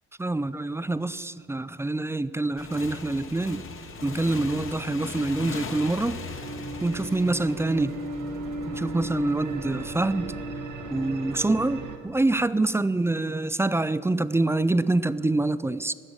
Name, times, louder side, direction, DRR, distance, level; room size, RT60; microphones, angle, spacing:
voice 1, 0.2-3.7 4.0-6.2 6.8-8.0 8.7-10.3 10.9-15.9, right 2 dB, 10° right, 0.3 m, -26 dB
Motorcycle / Engine, 2.6-8.9, left 5 dB, 45° left, 1.2 m, -39 dB
sound 1, 2.9-12.0, right 2 dB, 80° right, 1.3 m, -37 dB
12.5 x 7.4 x 9.9 m
cardioid pair, 90°, 30 cm